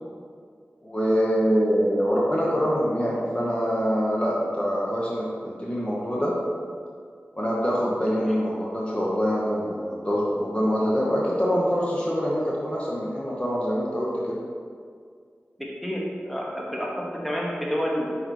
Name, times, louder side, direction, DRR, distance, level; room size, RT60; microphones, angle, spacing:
voice 1, 0.8-6.4 7.4-14.4, equal, 25° left, -5 dB, 0.9 m, -25 dB
voice 2, 15.6-18.1, equal, ahead, -3 dB, 1.2 m, -29 dB
5.7 x 4.0 x 4.6 m, 2.1 s
wide cardioid pair, 65°, 4 cm